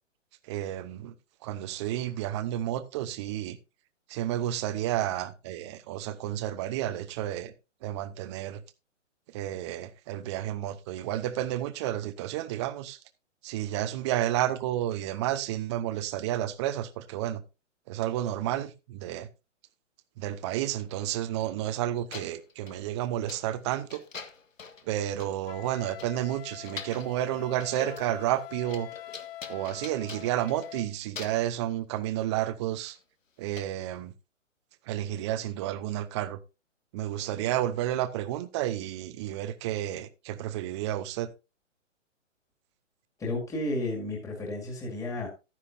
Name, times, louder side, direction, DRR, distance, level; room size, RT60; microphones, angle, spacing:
voice 1, 0.5-1.1 1.4-3.6 4.1-7.5 7.8-8.6 9.3-13.0 13.4-17.4 17.9-19.3 20.2-24.0 24.9-28.9 29.5-33.0 33.4-34.1 34.9-36.4 36.9-41.3, right 12 dB, 20° right, 0.7 m, -31 dB
sound 1, 21.7-21.8 22.1-22.8 23.3-23.6 23.9-24.9 25.2-25.3 25.7-25.8 26.0-27.1 27.6-28.1 28.4-30.8 31.1-31.5 32.8-33.0 33.6-33.7, left 5 dB, 85° left, 1.8 m, -44 dB
Wind instrument woodwind instrument, 25.4-30.9, left 13 dB, 45° left, 1.1 m, -44 dB
voice 2, 43.2-45.3, left 2 dB, 10° left, 2.3 m, -32 dB
12.5 x 10.0 x 2.7 m
hypercardioid pair, 140°, 38 cm